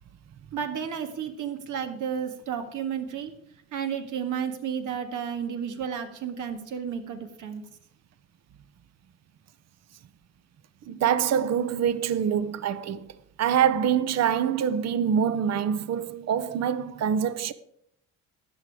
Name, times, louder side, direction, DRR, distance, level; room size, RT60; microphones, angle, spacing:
voice 1, 0.5-3.3 3.7-7.6, right 7 dB, 80° right, 1.9 m, -32 dB
voice 2, 10.9-13.1 13.4-17.5, right 8 dB, 60° right, 0.8 m, -25 dB
13.0 x 9.3 x 4.8 m
cardioid pair, 90°, 30 cm